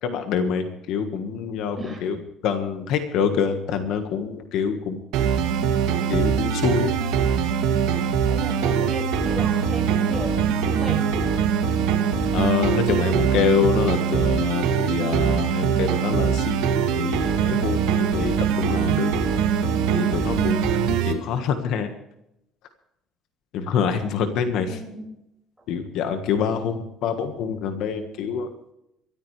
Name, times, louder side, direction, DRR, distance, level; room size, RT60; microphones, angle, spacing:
voice 1, 0.0-2.2 2.4-5.0 6.1-6.9 12.3-16.6 16.9-19.2 19.9-21.9 23.5-24.8 25.7-28.5, left 7 dB, 60° left, 7 dB, 1.5 m, -26 dB
sound 1, 5.1-21.1, right 7 dB, 85° right, 2.3 m, -22 dB
voice 2, 8.3-11.0 24.7-25.0, right 2 dB, 5° right, 0 dB, 5.4 m, -35 dB
23.0 x 14.0 x 3.3 m, 0.81 s
cardioid pair, 170°, 0 cm